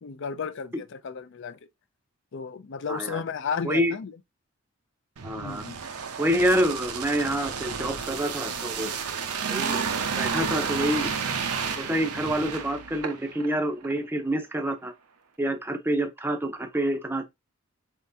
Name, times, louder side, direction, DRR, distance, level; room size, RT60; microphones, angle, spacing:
voice 1, 0.0-1.6 2.3-4.1 5.4-5.8, left 6 dB, 55° left, 0.4 m, -33 dB
voice 2, 2.9-3.2 3.6-3.9 5.2-5.6 6.2-8.9 9.5-9.8 10.2-11.1 11.8-14.9 15.4-17.3, equal, 10° right, 0.6 m, -27 dB
sound 1, 5.2-13.5 13.8-14.0, right 6 dB, 90° right, 0.7 m, -31 dB
4.4 x 3.6 x 2.7 m
head